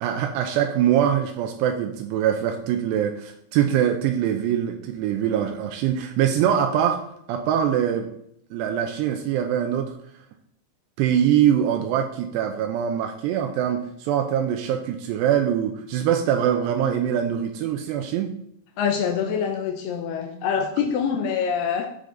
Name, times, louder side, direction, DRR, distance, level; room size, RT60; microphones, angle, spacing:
voice 1, 0.0-7.0 7.3-8.1 8.5-10.0 11.0-18.3 20.5-20.6, right 9 dB, 85° right, 5 dB, 2.8 m, -23 dB
voice 2, 18.8-21.9, left 7 dB, 80° left, 3 dB, 2.6 m, -25 dB
13.0 x 5.1 x 3.9 m, 0.71 s
omnidirectional pair, 4.9 m